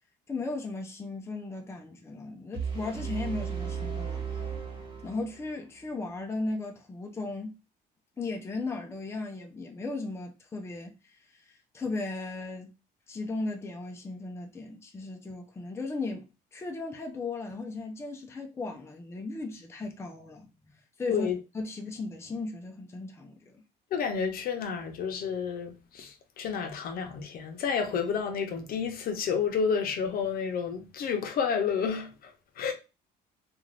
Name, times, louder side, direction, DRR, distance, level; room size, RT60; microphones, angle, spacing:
voice 1, 0.3-4.4 4.9-7.6 8.2-12.7 13.1-20.5 21.0-21.3 21.5-23.6, left 3 dB, 15° left, 0.5 m, -36 dB
sound 1, 2.5-5.6, right 6 dB, 30° right, 1.2 m, -35 dB
voice 2, 23.9-32.7, left 6 dB, 60° left, 0.7 m, -30 dB
2.5 x 2.4 x 3.1 m
cardioid pair, 110°, 17 cm